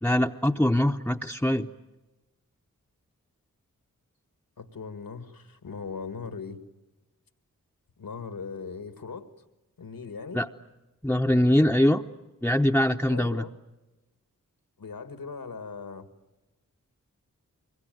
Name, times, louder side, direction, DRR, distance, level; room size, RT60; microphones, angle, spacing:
voice 1, 0.0-1.7 10.3-10.5 11.0-12.0 12.4-13.4, left 1 dB, 5° left, 2 dB, 0.8 m, -23 dB
voice 2, 4.6-6.6 8.0-9.3 9.8-10.4 13.1-13.5 14.8-16.1, left 5 dB, 80° left, 9 dB, 1.9 m, -39 dB
24.5 x 22.5 x 9.3 m, 1.1 s
cardioid pair, 45°, 34 cm